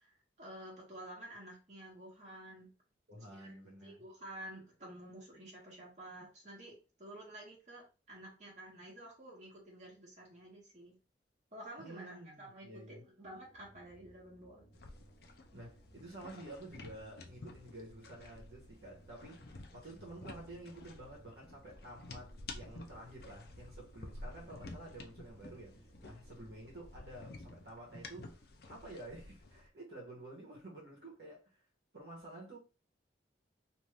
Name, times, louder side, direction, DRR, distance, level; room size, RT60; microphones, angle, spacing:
voice 1, 0.0-2.7 3.3-3.6 3.8-11.0 11.5-14.6, right 1 dB, 40° right, 1.2 m, -51 dB
voice 2, 3.1-4.0 11.8-13.0 15.5-31.6 31.9-32.6, right 1 dB, 65° right, 1.1 m, -51 dB
sound 1, 13.2-26.9, right 1 dB, 35° left, 1.4 m, -63 dB
sound 2, 14.7-29.7, left 2 dB, 55° left, 0.5 m, -52 dB
2.7 x 2.5 x 3.2 m
head